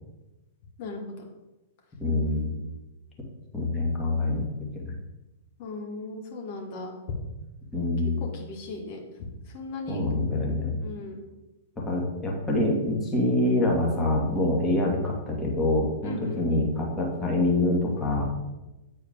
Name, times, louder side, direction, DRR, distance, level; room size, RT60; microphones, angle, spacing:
voice 1, 0.8-1.1 5.6-7.2 8.3-9.0 9.5-10.0 10.8-11.2 16.0-16.4, left 3 dB, 50° left, 0 dB, 1.8 m, -37 dB
voice 2, 2.0-2.6 3.5-4.9 7.7-8.2 9.9-10.8 11.8-18.3, left 2 dB, 15° left, -2 dB, 1.9 m, -25 dB
8.7 x 4.5 x 3.6 m, 1.0 s
figure-of-eight pair, 105°, 0 cm